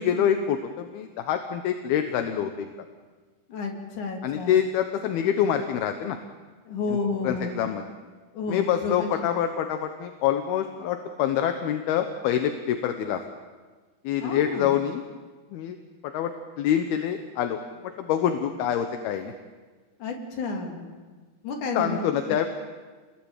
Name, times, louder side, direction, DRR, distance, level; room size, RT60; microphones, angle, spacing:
voice 1, 0.0-2.7 4.2-6.2 6.9-7.0 7.2-7.8 8.5-13.2 14.0-15.0 15.5-15.8 16.0-16.3 16.6-17.6 18.0-19.3 21.7-22.5, left 9 dB, 75° left, 7 dB, 3.1 m, -26 dB
voice 2, 3.5-4.6 6.7-7.7 8.3-9.1 14.2-14.7 20.0-20.9 21.4-22.1, left 3 dB, 50° left, 2 dB, 4.6 m, -31 dB
29.5 x 21.5 x 9.1 m, 1.4 s
omnidirectional pair, 4.6 m